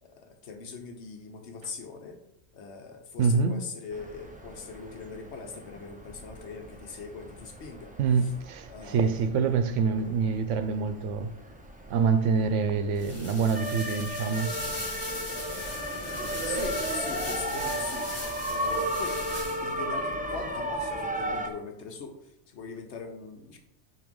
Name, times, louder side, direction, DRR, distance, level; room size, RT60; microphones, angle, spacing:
voice 1, 0.0-2.2 2.5-7.9 8.2-8.3 8.7-9.2 16.4-19.2 19.6-23.6, left 5 dB, 70° left, 1.2 m, -41 dB
voice 2, 3.2-3.6 8.0-11.3 11.9-14.5, right 5 dB, 85° right, 1.0 m, -26 dB
sound 1, 3.9-21.5, right 1 dB, 10° right, 0.6 m, -35 dB
sound 2, 13.0-19.8, left 1 dB, 25° left, 1.7 m, -39 dB
7.7 x 2.9 x 5.3 m
omnidirectional pair, 1.2 m